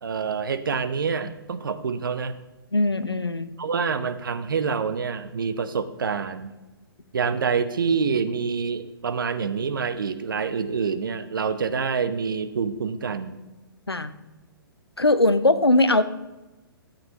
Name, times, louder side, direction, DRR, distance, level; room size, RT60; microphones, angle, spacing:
voice 1, 0.0-2.3 3.6-6.5 7.1-13.4, right 5 dB, 60° right, 10 dB, 0.8 m, -27 dB
voice 2, 2.7-3.5 13.9-14.1 15.0-16.0, left 2 dB, 85° left, 13 dB, 0.6 m, -20 dB
12.5 x 8.7 x 2.9 m, 1.1 s
figure-of-eight pair, 120°, 13 cm